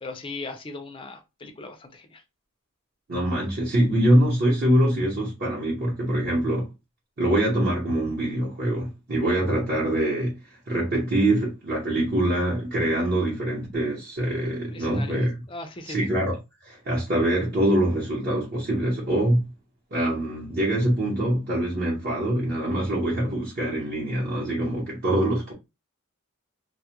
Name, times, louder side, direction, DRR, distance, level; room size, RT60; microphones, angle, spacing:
voice 1, 0.0-2.2 14.7-15.2 15.5-16.1, left 3 dB, 25° left, 0.4 m, -38 dB
voice 2, 3.1-6.7 7.2-10.4 10.7-15.3 15.9-16.4 16.6-19.5 19.9-25.5, right 1 dB, 45° right, 0.8 m, -24 dB
2.2 x 2.1 x 2.9 m
head